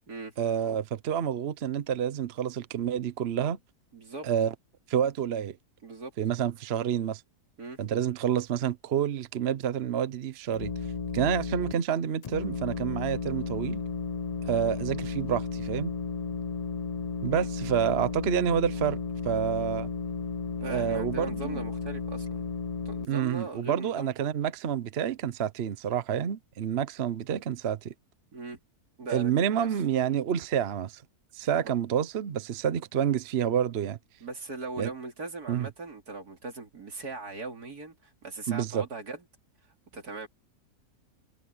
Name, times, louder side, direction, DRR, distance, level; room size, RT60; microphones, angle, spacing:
voice 1, 0.4-3.6 4.2-4.5 4.9-5.6 6.2-7.2 7.8-10.7 11.1-13.8 14.4-15.9 17.2-19.0 19.3-19.9 20.7-21.6 23.1-27.9 29.1-31.0 31.3-34.0 34.8-34.9 35.5-35.7 38.5-38.8, right 9 dB, 50° right, 0.9 m, -28 dB
voice 2, 3.9-4.3 5.8-6.1 7.6-7.8 17.3-17.4 20.6-22.4 22.9-24.1 28.3-28.6 29.0-29.7 31.6-31.7 34.2-39.2 39.9-40.3, right 3 dB, 85° right, 3.7 m, -39 dB
sound 1, 10.5-11.7 12.2-23.0, left 5 dB, 65° left, 0.3 m, -34 dB
omnidirectional pair, 1.6 m